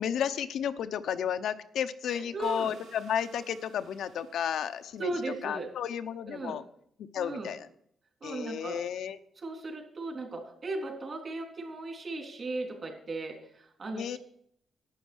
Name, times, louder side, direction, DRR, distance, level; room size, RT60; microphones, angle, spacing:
voice 1, 0.0-6.6 7.0-7.7 8.2-9.2 13.9-14.2, left 8 dB, 80° left, 10 dB, 0.8 m, -33 dB
voice 2, 2.1-2.7 5.0-5.7 6.3-6.6 7.2-7.5 8.2-8.8 9.4-14.2, right 3 dB, 40° right, 2 dB, 3.6 m, -37 dB
sound 1, 2.4-5.3, right 4 dB, 80° right, 3.2 m, -56 dB
11.5 x 9.2 x 6.3 m, 0.67 s
cardioid pair, 120°, 0 cm